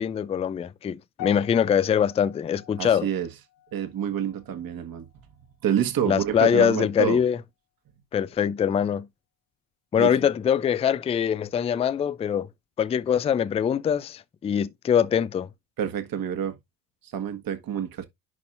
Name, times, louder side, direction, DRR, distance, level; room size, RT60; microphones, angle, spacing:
voice 1, 0.0-3.1 6.1-7.4 8.1-9.1 9.9-12.5 12.8-15.5, left 8 dB, 15° left, 0.4 m, -23 dB
sound 1, 1.2-5.6 5.8-6.2 6.9-7.0, left 13 dB, 45° left, 1.1 m, -46 dB
voice 2, 2.8-3.3 3.7-5.1 5.6-7.2 10.0-10.1 15.8-16.6 17.1-18.0, right 9 dB, 45° right, 1.7 m, -28 dB
11.0 x 4.1 x 2.6 m
hypercardioid pair, 65°, 49 cm